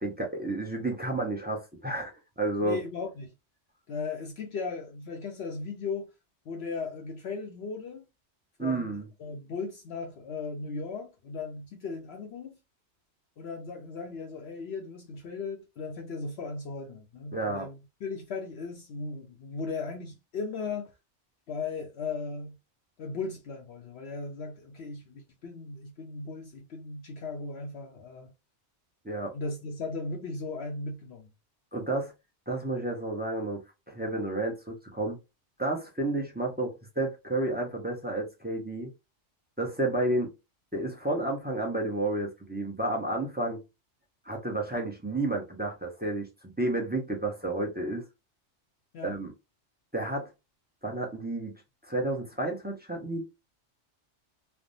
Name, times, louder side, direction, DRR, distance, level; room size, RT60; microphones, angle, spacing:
voice 1, 0.0-2.8 8.6-9.0 17.3-17.7 29.0-29.3 31.7-32.1 32.5-33.6 33.9-35.2 35.6-38.9 39.6-40.3 40.7-43.6 44.3-46.3 46.6-48.0 49.0-49.3 49.9-50.3 50.8-51.5 51.9-53.2, right 2 dB, 10° right, 0.6 m, -31 dB
voice 2, 2.6-3.3 3.9-6.1 6.5-8.0 8.6-12.6 13.4-20.9 21.5-22.6 23.0-28.3 29.3-31.3 48.9-49.2, left 4 dB, 65° left, 0.8 m, -37 dB
3.3 x 2.0 x 2.5 m
omnidirectional pair, 1.2 m